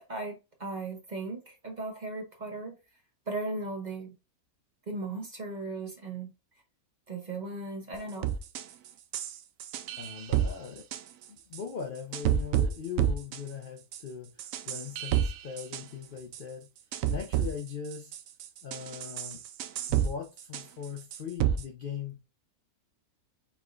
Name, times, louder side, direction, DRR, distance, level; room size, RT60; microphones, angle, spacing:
voice 1, 0.0-2.8 3.3-4.1 4.9-6.3 7.1-8.3, right 3 dB, 35° right, 1.0 m, -37 dB
sound 1, 7.9-8.0 8.2-8.6 9.1-10.5 10.8-11.0 11.5-11.6 12.1-12.7 13.0-13.4 13.9-14.0 14.4-15.8 16.3-16.4 16.9-17.5 17.9-20.1 20.4-20.8 21.1-21.6, right 10 dB, 70° right, 0.9 m, -29 dB
voice 2, 10.0-10.8 11.3-16.7 17.1-18.1 18.6-19.4 19.9-22.2, left 7 dB, 55° left, 0.6 m, -40 dB
4.6 x 4.3 x 2.4 m
omnidirectional pair, 1.6 m